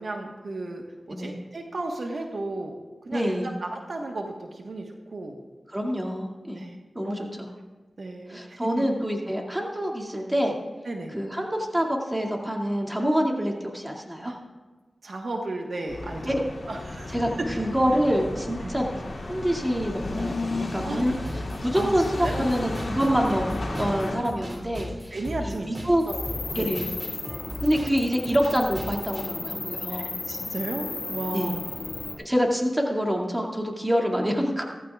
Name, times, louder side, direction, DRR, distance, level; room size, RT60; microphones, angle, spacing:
voice 1, 0.0-2.7 3.0-5.4 6.6-6.7 7.0-7.2 8.0-8.9 10.8-11.1 14.2-14.4 15.0-17.1 18.6-18.8 20.8-21.1 21.7-21.9 22.2-22.5 25.1-25.7 26.1-26.8 29.9-31.6, right 2 dB, 70° right, 2 dB, 1.3 m, -34 dB
voice 2, 3.1-3.5 5.7-6.7 6.9-7.5 8.3-10.6 11.1-14.3 16.2-16.4 17.1-26.0 26.5-26.9 27.6-30.1 31.3-31.5 32.2-34.7, equal, 15° right, 0 dB, 2.3 m, -26 dB
sound 1, 15.9-24.2, left 2 dB, 60° left, 3.0 m, -33 dB
sound 2, 21.2-29.2, equal, 40° right, 3.0 m, -38 dB
sound 3, 26.1-32.1, left 3 dB, 85° left, 1.8 m, -35 dB
16.5 x 14.5 x 2.4 m, 1.3 s
cardioid pair, 50°, 0 cm